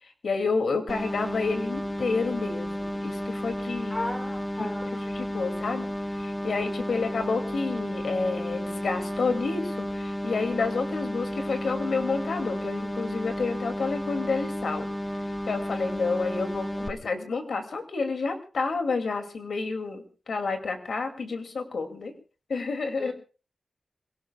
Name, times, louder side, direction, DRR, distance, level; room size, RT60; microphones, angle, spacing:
voice 1, 0.2-4.0 4.6-5.8 6.1-14.9 15.5-22.1 22.5-23.1, left 4 dB, 75° left, 5 dB, 2.5 m, -30 dB
sound 1, 0.9-16.9, equal, 5° left, 1.3 m, -32 dB
voice 2, 3.9-5.1 6.9-7.3 23.0-23.1, left 1 dB, 25° left, 6 dB, 3.2 m, -36 dB
27.5 x 17.5 x 2.3 m, 0.35 s
wide cardioid pair, 130°, 0 cm